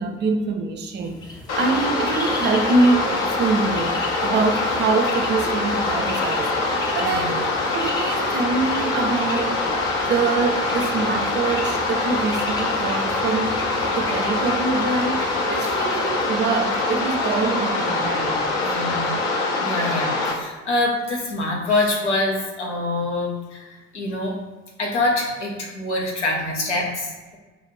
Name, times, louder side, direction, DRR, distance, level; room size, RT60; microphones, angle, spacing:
voice 1, 0.0-7.5 7.7-9.8 10.1-13.6 13.9-18.4, right 4 dB, 30° right, 4 dB, 0.4 m, -24 dB
Bird, 1.0-18.7, left 1 dB, 10° left, 0.7 m, -38 dB
sound 1, 1.5-20.3, left 3 dB, 45° left, 0.7 m, -24 dB
voice 2, 7.0-7.3 18.6-19.1 19.6-24.4 24.8-27.4, left 2 dB, 75° left, -1 dB, 0.9 m, -25 dB
5.1 x 2.4 x 3.2 m, 1.2 s
figure-of-eight pair, 60°, 35 cm